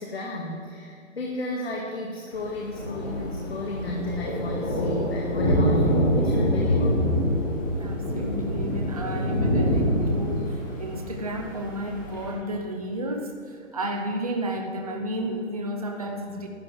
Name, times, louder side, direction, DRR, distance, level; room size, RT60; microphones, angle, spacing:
voice 1, 0.0-7.1, left 2 dB, 50° left, -1 dB, 1.8 m, -33 dB
Thunder, 2.3-12.3, equal, 15° left, 1.6 m, -25 dB
voice 2, 7.8-16.5, right 1 dB, 30° right, 2 dB, 0.6 m, -32 dB
12.0 x 8.0 x 9.5 m, 2.3 s
hypercardioid pair, 175°, 40 cm